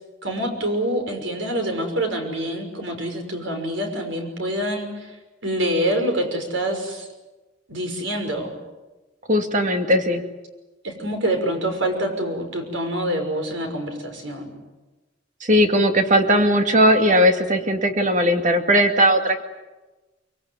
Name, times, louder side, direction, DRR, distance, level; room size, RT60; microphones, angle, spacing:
voice 1, 0.2-5.1 5.4-7.1 7.7-8.5 10.8-14.5, right 1 dB, 80° right, 4 dB, 6.0 m, -26 dB
voice 2, 9.3-10.2 15.4-19.4, equal, 40° right, 5 dB, 2.3 m, -18 dB
24.5 x 23.0 x 9.7 m, 1.2 s
head